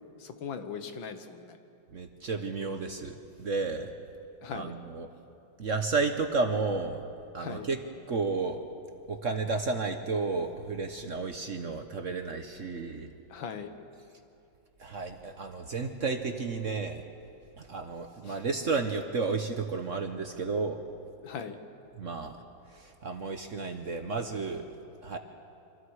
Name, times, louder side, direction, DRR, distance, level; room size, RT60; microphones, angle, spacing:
voice 1, 0.2-1.6 4.4-4.7 7.4-7.7 13.3-13.7 18.2-18.4 21.2-21.6, left 6 dB, 75° left, 8 dB, 1.9 m, -39 dB
voice 2, 1.9-3.9 4.5-5.1 5.6-7.0 7.3-7.8 8.1-8.6 9.1-13.1 14.8-17.0 17.6-20.8 22.0-22.4 22.7-24.7 25.0-25.2, right 4 dB, 50° right, 6 dB, 1.1 m, -32 dB
28.0 x 25.5 x 4.8 m, 2.7 s
omnidirectional pair, 2.1 m